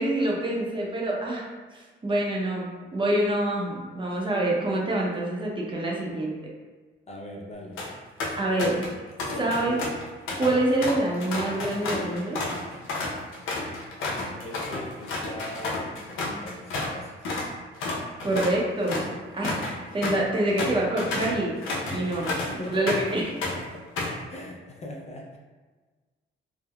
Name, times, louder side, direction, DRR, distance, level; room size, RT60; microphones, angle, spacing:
voice 1, 0.0-6.4 8.4-8.9 9.4-9.8 10.4-12.4 18.2-19.1 19.3-19.6 19.9-21.6 21.9-22.3 22.7-23.3, right 1 dB, 25° right, -3 dB, 0.6 m, -26 dB
voice 2, 7.1-7.8 9.2-9.5 14.0-17.4 21.9-22.9 23.7-23.8 24.3-25.4, left 1 dB, 35° left, -1 dB, 0.4 m, -40 dB
sound 1, 7.5-7.9 8.2-8.9 9.2-17.0 17.2-17.5 17.8-23.1 23.4-24.2, left 2 dB, 85° left, 0.7 m, -31 dB
3.5 x 2.0 x 2.2 m, 1.3 s
cardioid pair, 90°, 20 cm